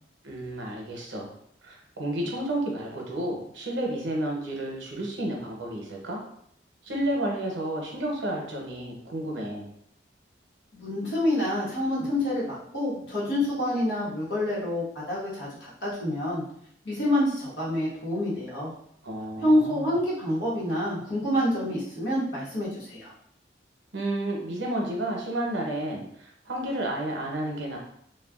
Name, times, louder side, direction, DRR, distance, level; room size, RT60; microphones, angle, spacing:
voice 1, 0.2-1.3 1.6-6.2 6.8-9.7 19.0-19.9 23.9-27.8, right 1 dB, 90° right, -1 dB, 0.8 m, -31 dB
voice 2, 10.7-16.4 16.8-18.7 19.4-23.1, left 1 dB, 85° left, -8 dB, 1.3 m, -27 dB
3.2 x 2.3 x 2.3 m, 0.70 s
head